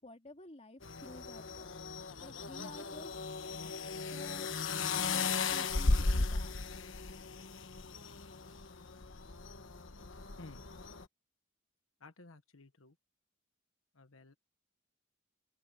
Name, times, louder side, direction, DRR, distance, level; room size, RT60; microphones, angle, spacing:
voice 1, 0.0-1.7 2.2-3.2 4.1-4.5 4.9-6.8, left 2 dB, 30° left, 2.8 m, -52 dB
sound 1, 0.8-11.0, left 3 dB, 65° left, 1.2 m, -36 dB
voice 2, 12.0-12.9 14.0-14.4, left 2 dB, 85° left, 1.4 m, -54 dB
open air
head